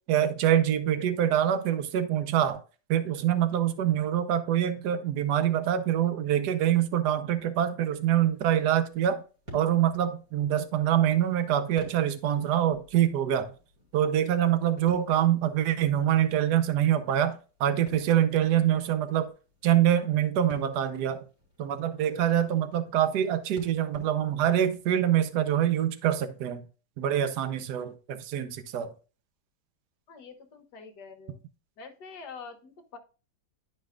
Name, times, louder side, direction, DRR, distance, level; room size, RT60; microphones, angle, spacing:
voice 1, 0.1-2.6 2.9-9.2 9.5-13.5 13.9-19.3 19.6-21.2 21.6-26.6 27.0-28.9, right 10 dB, 65° right, 1.2 m, -25 dB
sound 1, 7.8-24.9, left 1 dB, 45° right, 3.2 m, -54 dB
voice 2, 30.1-31.4 31.8-33.0, left 5 dB, 60° left, 1.4 m, -45 dB
11.5 x 5.0 x 2.4 m
omnidirectional pair, 2.1 m